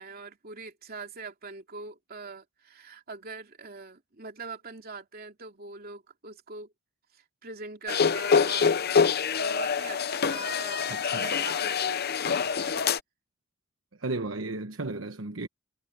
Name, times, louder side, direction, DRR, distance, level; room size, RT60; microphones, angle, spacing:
voice 1, 0.0-6.7 7.1-12.9, right 4 dB, 50° right, 2.9 m, -43 dB
sound 1, 7.9-13.0, left 6 dB, 55° left, 0.8 m, -25 dB
voice 2, 10.9-11.3 14.0-15.5, right 2 dB, 75° right, 1.1 m, -34 dB
head